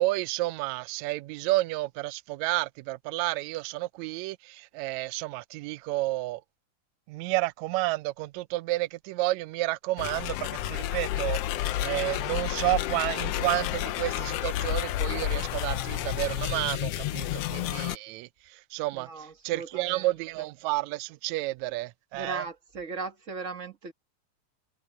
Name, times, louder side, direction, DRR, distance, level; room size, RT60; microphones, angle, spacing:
voice 1, 0.0-6.4 7.1-22.5, right 20 dB, 75° right, 1.8 m, -31 dB
sound 1, 10.0-18.0, left 13 dB, 90° left, 1.3 m, -30 dB
voice 2, 17.3-17.6 18.9-20.1 20.4-20.5 22.1-23.9, right 4 dB, 35° right, 1.2 m, -38 dB
omnidirectional pair, 3.6 m